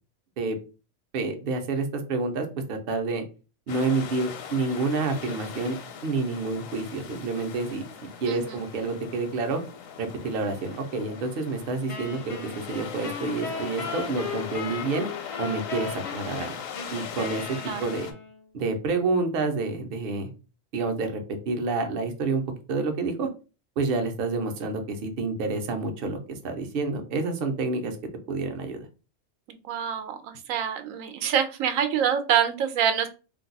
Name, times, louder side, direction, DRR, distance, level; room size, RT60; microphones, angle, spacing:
voice 1, 1.1-3.2 3.7-5.8 6.0-7.9 8.2-9.6 10.0-15.1 15.4-16.6 16.9-18.1 18.5-20.3 20.7-21.2 21.5-22.4 22.7-23.3 23.8-28.0 28.3-28.9, right 3 dB, 55° right, 5 dB, 0.7 m, -28 dB
sound 1, 3.7-18.1, left 7 dB, 85° left, 1.0 m, -40 dB
voice 2, 8.3-8.6 17.7-17.8 29.5-33.1, right 8 dB, 90° right, 9 dB, 1.0 m, -26 dB
Wind instrument woodwind instrument, 11.9-18.5, left 5 dB, 45° left, 0.4 m, -37 dB
2.6 x 2.3 x 3.9 m, 0.33 s
omnidirectional pair, 1.3 m